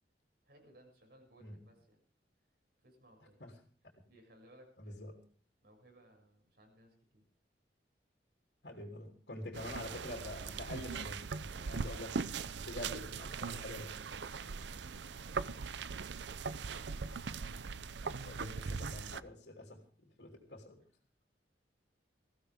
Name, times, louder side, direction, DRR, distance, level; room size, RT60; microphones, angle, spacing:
voice 1, 0.4-2.0 2.8-3.4 4.1-5.0 5.6-7.2 14.3-15.7 18.5-18.6, right 1 dB, 65° right, 2 dB, 6.7 m, -62 dB
voice 2, 4.8-5.2 8.6-14.0 16.7-17.0 18.0-20.8, left 1 dB, 70° left, 2 dB, 3.1 m, -47 dB
sound 1, 9.5-19.2, right 5 dB, 80° right, 0.6 m, -40 dB
21.0 x 15.5 x 3.6 m, 0.44 s
head